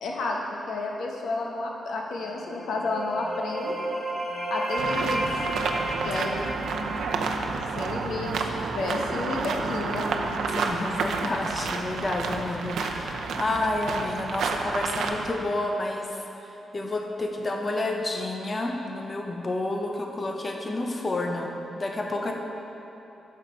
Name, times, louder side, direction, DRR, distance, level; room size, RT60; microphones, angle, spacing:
voice 1, 0.0-3.7 4.5-5.2 6.0-6.3 7.7-8.3 8.7-10.1, left 3 dB, 80° left, 0 dB, 1.1 m, -31 dB
sound 1, 2.3-8.0, right 1 dB, 10° right, 1.9 m, -32 dB
sound 2, 4.8-15.3, right 4 dB, 85° right, 0.6 m, -30 dB
voice 2, 10.5-22.3, left 2 dB, 25° left, 2 dB, 0.7 m, -30 dB
9.2 x 6.5 x 4.4 m, 3.0 s
wide cardioid pair, 170°, 0 cm